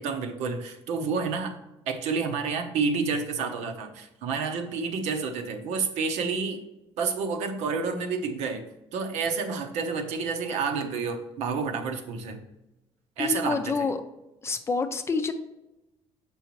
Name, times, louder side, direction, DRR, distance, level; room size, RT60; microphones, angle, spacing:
voice 1, 0.0-1.5 1.9-6.6 7.0-8.6 8.9-12.4 13.2-13.9, right 5 dB, 80° right, 5 dB, 0.9 m, -29 dB
voice 2, 13.2-14.0 14.4-15.3, left 4 dB, 25° left, 8 dB, 0.5 m, -27 dB
7.2 x 5.5 x 3.1 m, 0.96 s
cardioid pair, 145°, 11 cm